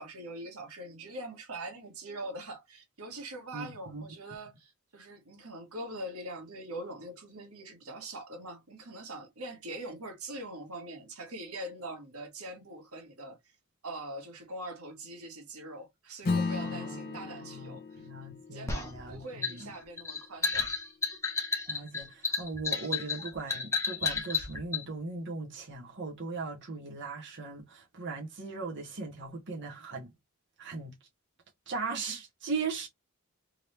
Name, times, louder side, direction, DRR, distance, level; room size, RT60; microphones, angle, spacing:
voice 1, 0.0-13.4 13.8-20.7, right 1 dB, 85° right, 1.6 m, -43 dB
voice 2, 3.5-4.0 16.6-19.7 21.7-30.1 30.6-30.9 31.7-32.9, right 4 dB, 55° right, 1.2 m, -39 dB
Acoustic guitar / Strum, 16.2-21.0, left 3 dB, 45° left, 0.8 m, -36 dB
sound 1, 18.7-24.8, left 5 dB, 15° left, 1.0 m, -32 dB
3.7 x 3.1 x 3.2 m
head